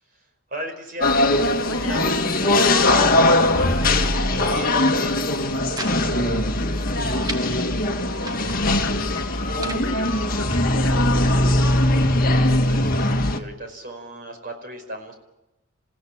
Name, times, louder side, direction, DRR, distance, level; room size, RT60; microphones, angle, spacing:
voice 1, 0.0-1.3 1.6-2.1 3.9-6.6 7.1-8.3 12.4-15.1, right 1 dB, 40° right, 5 dB, 5.3 m, -37 dB
sound 1, 1.0-13.4, left 1 dB, 40° left, 1.8 m, -20 dB
voice 2, 1.6-2.2 2.9-3.5 8.8-11.5, left 2 dB, 60° left, 6 dB, 1.7 m, -34 dB
sound 2, 4.6-5.0 5.3-6.0 6.2-6.3 6.7-7.4 8.0-8.6 9.3-9.9 10.5-11.3, right 2 dB, 15° right, 1.6 m, -37 dB
29.0 x 16.0 x 8.8 m, 0.93 s
head